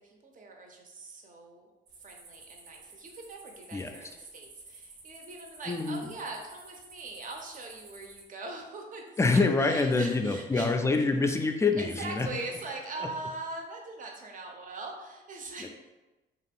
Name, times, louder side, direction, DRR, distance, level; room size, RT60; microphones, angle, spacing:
voice 1, 0.2-1.7 2.0-10.7 11.7-15.7, right 3 dB, 40° right, 2 dB, 0.6 m, -41 dB
sound 1, 1.9-8.3, right 3 dB, 80° right, 0.7 m, -52 dB
voice 2, 5.7-6.1 9.2-12.3 13.0-13.1 15.6-15.7, left 3 dB, 15° left, 4 dB, 0.3 m, -26 dB
2.6 x 2.4 x 3.4 m, 1.1 s
cardioid pair, 90°, 20 cm